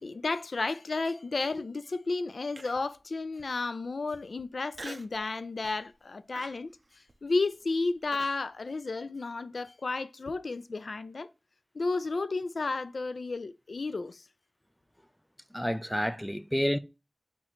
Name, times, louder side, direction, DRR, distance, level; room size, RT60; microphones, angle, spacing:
voice 1, 0.0-6.7 7.2-11.3 11.7-14.2, left 3 dB, 90° left, 0.3 m, -32 dB
Human voice, 2.6-3.0 3.5-3.6 4.7-5.2 5.6-5.9 6.3-8.4, right 2 dB, 50° right, 0.5 m, -46 dB
voice 2, 15.5-16.8, equal, 5° left, 0.4 m, -29 dB
4.3 x 3.1 x 3.9 m
wide cardioid pair, 50°, 0 cm